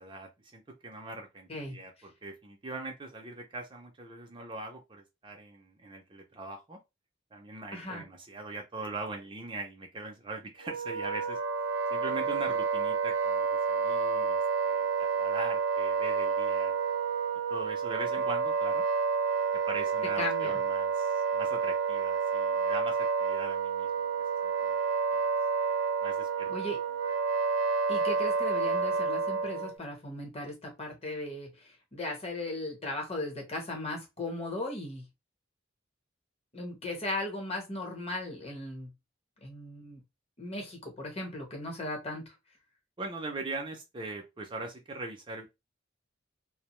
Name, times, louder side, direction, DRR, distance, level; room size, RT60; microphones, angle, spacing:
voice 1, 0.0-6.8 7.3-16.8 17.5-18.8 19.7-24.1 24.4-24.8 25.1-25.3 26.0-26.5 43.0-45.5, right 3 dB, 25° right, 0.5 m, -41 dB
voice 2, 7.7-8.0 20.2-20.6 26.5-26.8 27.9-35.0 36.5-38.9 39.4-40.0 40.4-42.3, left 2 dB, 30° left, 1.0 m, -37 dB
Wind instrument woodwind instrument, 10.6-29.7, right 5 dB, 75° right, 0.5 m, -29 dB
2.6 x 2.1 x 3.0 m
head